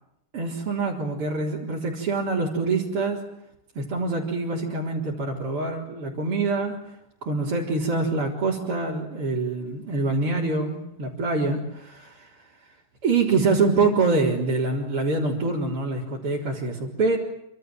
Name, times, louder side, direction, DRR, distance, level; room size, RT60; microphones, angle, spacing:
voice 1, 0.3-3.2 3.7-6.7 7.3-12.3 13.0-17.2, right 3 dB, 40° right, -4 dB, 4.8 m, -25 dB
28.5 x 26.5 x 7.8 m, 0.81 s
omnidirectional pair, 4.0 m